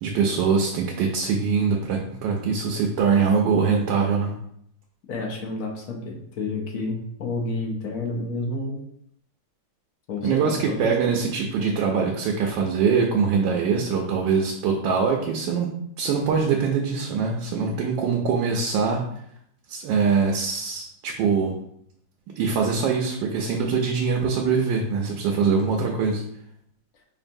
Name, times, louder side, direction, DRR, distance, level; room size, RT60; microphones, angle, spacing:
voice 1, 0.0-4.3 10.2-19.0 19.7-21.5 22.4-26.2, right 5 dB, 80° right, 0 dB, 1.3 m, -23 dB
voice 2, 5.1-8.8 10.1-11.2, left 2 dB, 65° left, 0 dB, 0.9 m, -30 dB
5.1 x 2.6 x 2.6 m, 0.71 s
omnidirectional pair, 2.0 m